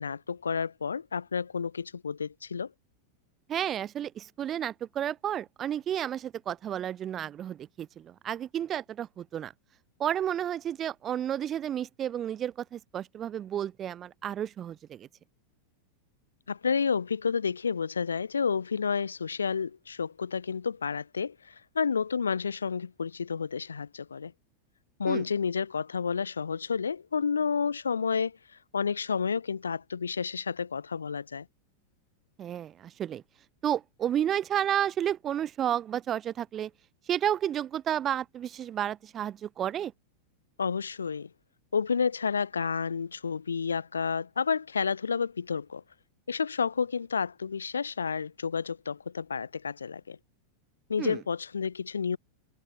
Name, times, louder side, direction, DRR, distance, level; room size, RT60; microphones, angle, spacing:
voice 1, 0.0-2.7 16.5-24.3 25.0-28.4 28.7-31.5 40.6-41.3 41.7-45.8 46.3-50.2 50.9-52.2, left 6 dB, 75° left, 0.8 m, -30 dB
voice 2, 3.5-9.5 10.0-15.1 25.1-25.2 32.4-33.2 33.6-36.7 37.1-39.9 51.0-51.2, right 10 dB, 25° right, 0.5 m, -31 dB
figure-of-eight pair, 90°, 0 cm